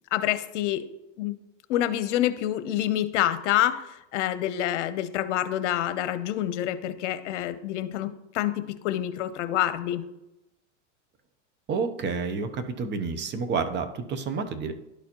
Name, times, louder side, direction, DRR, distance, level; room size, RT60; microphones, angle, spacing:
voice 1, 0.1-0.8 1.2-1.4 1.7-10.0, left 12 dB, 75° left, 12 dB, 0.8 m, -27 dB
voice 2, 11.7-14.7, right 5 dB, 30° right, 9 dB, 0.8 m, -29 dB
11.5 x 4.2 x 2.9 m, 0.89 s
supercardioid pair, 120°, 36 cm